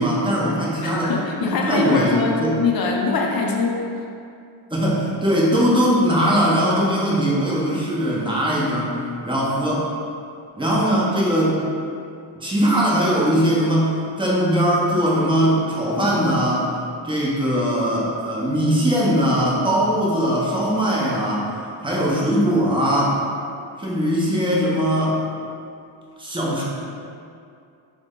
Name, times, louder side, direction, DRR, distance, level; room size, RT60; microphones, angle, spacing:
voice 1, 0.0-1.1 1.5-2.6 4.7-8.9 9.2-9.9 10.6-11.6 12.4-16.7 17.0-21.5 21.8-23.2 23.8-25.2 26.2-26.6, equal, 10° right, -6 dB, 0.7 m, -20 dB
voice 2, 0.8-4.0, left 4 dB, 50° left, 0 dB, 0.5 m, -23 dB
3.2 x 2.1 x 3.6 m, 2.4 s
cardioid pair, 80°, 47 cm